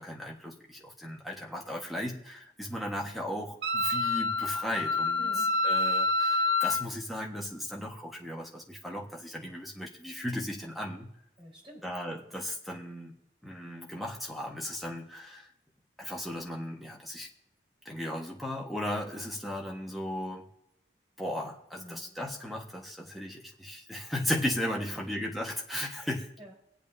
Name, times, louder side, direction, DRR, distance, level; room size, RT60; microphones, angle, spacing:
voice 1, 0.0-5.3 5.6-11.1 11.8-13.1 13.4-15.5 16.0-17.3 17.8-20.5 21.2-26.3, left 1 dB, ahead, -2 dB, 1.5 m, -36 dB
Wind instrument woodwind instrument, 3.6-6.8, left 2 dB, 75° right, 0.7 m, -27 dB
voice 2, 5.2-5.7 11.4-12.0 21.7-22.2 24.8-25.2 26.0-26.1 26.4-26.5, equal, 30° right, -2 dB, 4.2 m, -50 dB
24.0 x 8.4 x 2.8 m, 0.81 s
head